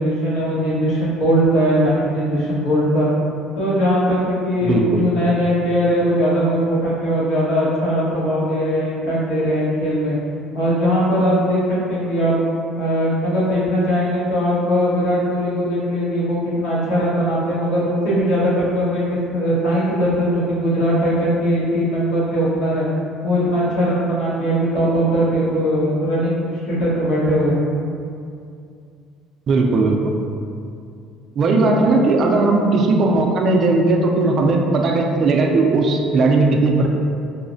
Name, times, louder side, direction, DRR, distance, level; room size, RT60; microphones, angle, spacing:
voice 1, 0.0-3.1 3.6-10.1 10.5-12.3 12.8-22.9 23.2-27.6 31.8-31.9, equal, 80° left, -8 dB, 1.2 m, -20 dB
voice 2, 4.6-5.0 29.5-30.1 31.4-36.9, right 3 dB, 40° right, 2 dB, 0.3 m, -17 dB
4.7 x 2.0 x 2.6 m, 2.4 s
cardioid pair, 145°, 0 cm